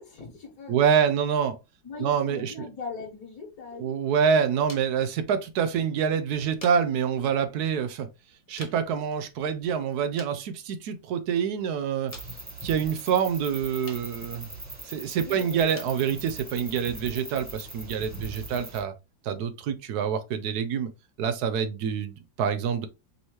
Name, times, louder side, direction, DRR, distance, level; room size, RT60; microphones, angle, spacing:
voice 1, 0.0-0.8 1.8-3.9 15.2-15.6, left 5 dB, 55° left, 1.9 m, -40 dB
voice 2, 0.7-1.6 2.0-2.7 3.8-8.1 8.5-12.2 12.6-14.5 14.8-19.0 19.2-20.9 21.2-22.9, right 7 dB, 70° right, 0.9 m, -26 dB
sound 1, 3.4-18.5, left 2 dB, 25° left, 0.8 m, -53 dB
sound 2, 12.1-18.8, right 2 dB, 20° right, 0.4 m, -41 dB
5.4 x 2.8 x 3.0 m
omnidirectional pair, 2.0 m